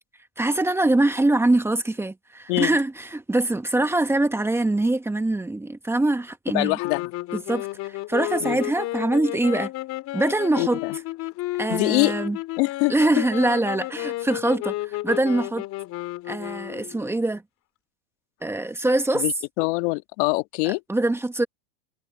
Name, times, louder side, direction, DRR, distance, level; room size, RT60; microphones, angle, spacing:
voice 1, 0.4-6.8 7.3-9.7 10.1-10.8 11.6-12.4 12.9-15.6 16.3-17.4 18.4-19.2 20.6-21.5, right 2 dB, 5° right, 1.5 m, -23 dB
voice 2, 6.5-7.1 8.4-8.6 10.6-11.0 11.7-12.1 12.6-12.9 19.1-20.8, left 26 dB, 60° left, 2.4 m, -24 dB
sound 1, 6.8-17.2, left 17 dB, 45° left, 4.1 m, -32 dB
supercardioid pair, 130°, 38 cm